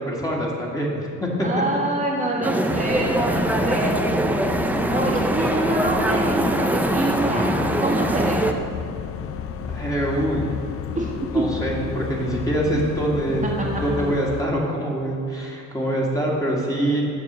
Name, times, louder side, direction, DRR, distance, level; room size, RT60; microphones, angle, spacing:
voice 1, 0.0-1.5 9.7-10.4 11.3-17.0, right 1 dB, 10° left, -4 dB, 2.0 m, -24 dB
voice 2, 1.4-4.2 4.5-8.4 10.9-11.4, right 2 dB, 25° right, -3 dB, 1.5 m, -26 dB
sound 1, 2.4-8.5, right 1 dB, 5° right, 0.5 m, -22 dB
sound 2, 2.7-14.4, left 7 dB, 50° left, 0.5 m, -32 dB
7.4 x 6.7 x 6.1 m, 2.4 s
cardioid pair, 90°, 30 cm